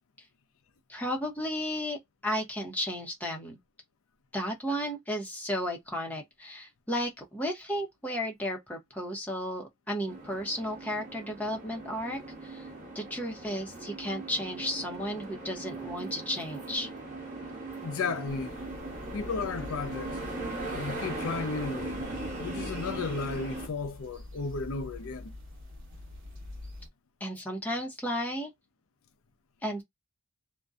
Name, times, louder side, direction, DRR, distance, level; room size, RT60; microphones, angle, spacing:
voice 1, 0.9-2.0 2.2-3.6 4.3-12.7 12.9-16.9 27.2-28.5 29.6-29.8, equal, 5° left, 0.7 m, -33 dB
sound 1, 10.1-23.7, right 2 dB, 35° right, 1.0 m, -39 dB
voice 2, 17.8-18.6 19.1-20.2 20.7-22.0 22.4-25.4, left 4 dB, 65° left, 0.5 m, -34 dB
sound 2, 18.3-26.9, left 2 dB, 55° right, 1.1 m, -45 dB
2.6 x 2.1 x 2.4 m
head